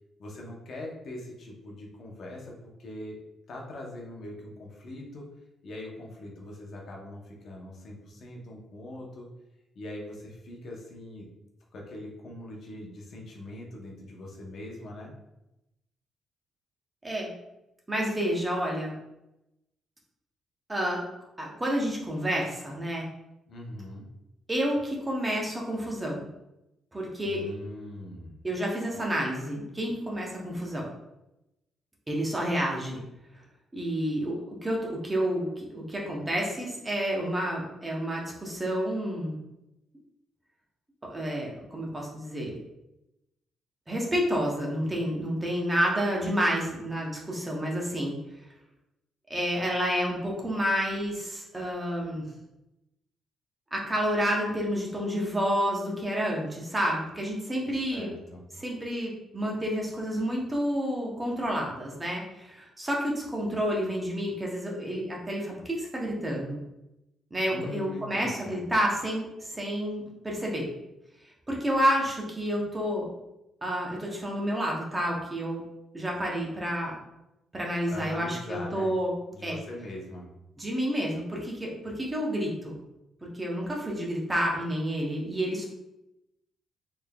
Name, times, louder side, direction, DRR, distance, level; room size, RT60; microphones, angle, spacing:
voice 1, 0.2-3.2 3.5-5.3 5.6-9.3 9.7-11.3 11.7-15.1 23.5-24.1 27.2-28.4 57.9-58.4 67.5-68.6 77.9-78.9 79.3-80.3, left 1 dB, 50° left, -1 dB, 0.8 m, -41 dB
voice 2, 17.9-18.9 20.7-21.0 21.4-23.0 24.5-26.3 26.9-27.4 28.4-30.9 32.1-33.0 33.7-39.4 41.0-42.6 43.9-48.2 49.3-52.3 53.7-58.1 58.6-66.6 67.3-70.7 71.5-73.1 73.6-75.6 75.9-76.9 77.5-79.1 79.4-79.6 80.6-82.8 83.2-85.7, equal, 15° right, -2 dB, 0.7 m, -29 dB
3.8 x 3.3 x 2.3 m, 0.91 s
cardioid pair, 165°, 0 cm